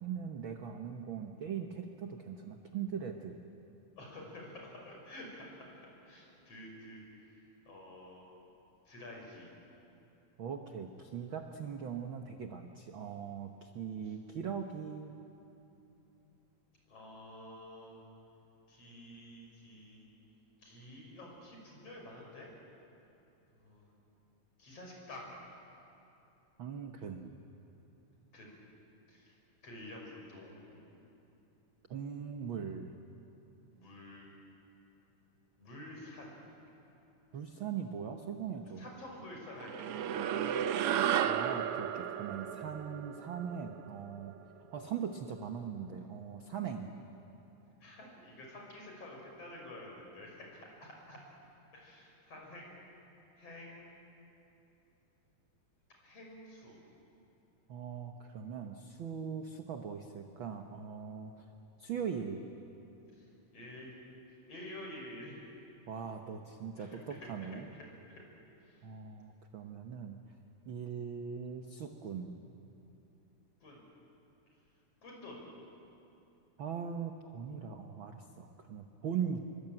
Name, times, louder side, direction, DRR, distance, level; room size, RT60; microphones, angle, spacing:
voice 1, 0.0-3.4 10.4-15.1 26.6-27.4 31.9-32.9 37.3-38.9 41.2-44.4 44.7-46.9 57.7-61.4 61.8-62.4 65.9-67.7 68.8-70.2 70.7-72.4 76.6-79.4, right 7 dB, 60° right, 5 dB, 1.3 m, -40 dB
voice 2, 4.0-8.2 8.9-9.5 16.9-18.0 18.7-20.0 20.6-22.5 23.5-23.9 24.6-25.3 28.3-28.6 29.1-29.4 29.6-31.1 33.7-34.3 35.6-36.4 38.8-40.6 47.8-51.2 51.7-52.7 53.4-53.9 56.0-56.8 63.1-64.0 64.5-65.4 66.8-66.9 68.1-68.2 68.6-68.8 73.6-73.8 75.0-75.5, left 1 dB, 50° left, -1 dB, 6.6 m, -50 dB
sound 1, 39.6-44.3, right 9 dB, 80° right, 1.3 m, -33 dB
27.0 x 23.5 x 8.9 m, 2.9 s
omnidirectional pair, 3.6 m